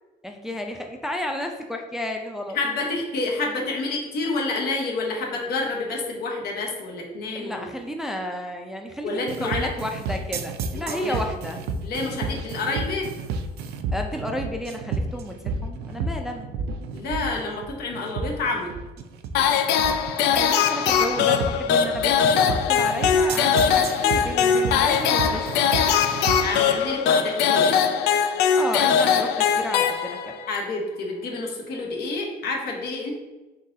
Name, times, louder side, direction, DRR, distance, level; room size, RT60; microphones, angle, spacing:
voice 1, 0.2-2.6 7.3-11.6 13.9-16.5 20.2-25.9 28.5-30.3, left 1 dB, ahead, 3 dB, 0.4 m, -32 dB
voice 2, 2.5-7.7 9.0-9.7 10.9-11.2 11.8-13.1 16.9-18.7 26.4-27.8 30.5-33.1, left 3 dB, 70° left, 0 dB, 1.0 m, -28 dB
sound 1, 9.3-26.6, right 3 dB, 70° right, 0.4 m, -31 dB
sound 2, 19.3-30.5, left 7 dB, 85° left, 0.4 m, -21 dB
4.0 x 3.8 x 2.7 m, 1.1 s
cardioid pair, 110°, 17 cm